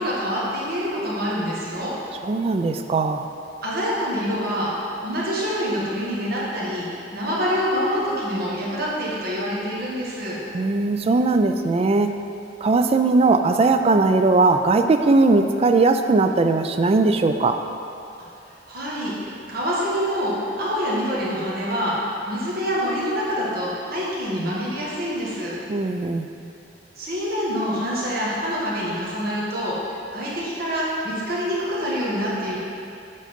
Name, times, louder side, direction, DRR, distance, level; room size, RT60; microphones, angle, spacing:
voice 1, 0.0-1.9 3.6-10.4 18.7-22.0 22.3-25.6 26.9-32.6, equal, 55° right, -6 dB, 1.5 m, -26 dB
voice 2, 2.2-3.3 10.5-12.1 12.6-17.6 25.7-26.3, right 3 dB, 35° right, 7 dB, 0.3 m, -19 dB
7.6 x 3.8 x 5.2 m, 2.6 s
head